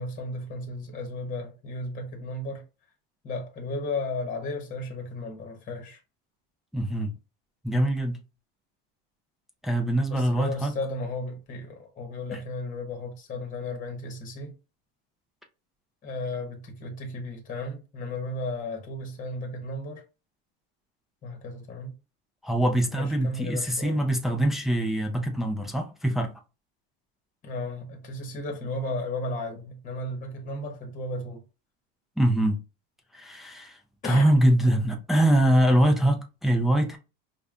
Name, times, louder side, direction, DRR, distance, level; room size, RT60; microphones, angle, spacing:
voice 1, 0.0-2.6 3.2-6.0 10.1-14.5 16.0-20.0 21.2-21.9 22.9-24.0 27.4-31.4 34.0-34.3, left 2 dB, 25° left, 1.0 m, -34 dB
voice 2, 6.7-7.1 7.6-8.2 9.6-10.8 12.3-12.4 22.4-26.3 32.2-32.6 33.1-33.8 34.0-37.0, right 1 dB, ahead, 0.3 m, -23 dB
5.0 x 2.2 x 2.4 m
supercardioid pair, 140°, 30 cm